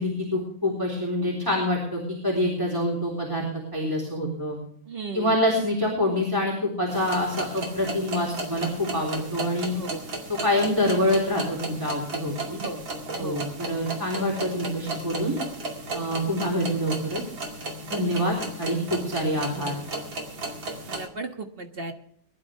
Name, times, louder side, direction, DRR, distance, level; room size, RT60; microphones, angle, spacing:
voice 1, 0.0-3.5 3.7-4.6 5.1-9.7 10.3-12.6 13.2-15.4 15.9-17.2 17.9-19.7, left 1 dB, 10° right, -3 dB, 3.6 m, -26 dB
voice 2, 4.9-5.3 9.7-10.0 12.6-12.8 13.1-13.5 20.9-21.9, right 3 dB, 30° right, 4 dB, 1.5 m, -35 dB
sound 1, 6.9-21.1, right 2 dB, 70° right, 3.2 m, -35 dB
21.5 x 11.5 x 3.4 m, 0.66 s
omnidirectional pair, 2.2 m